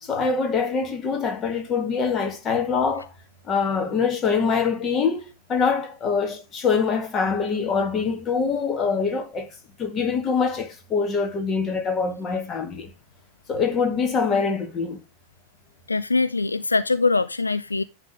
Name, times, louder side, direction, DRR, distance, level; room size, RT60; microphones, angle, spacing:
voice 1, 0.0-3.1 3.5-9.5 9.8-12.9 13.5-15.0, left 5 dB, 25° left, 1.6 m, -24 dB
voice 2, 15.9-17.8, left 3 dB, 80° left, 0.3 m, -22 dB
10.0 x 3.4 x 5.5 m
figure-of-eight pair, 90°, 0 cm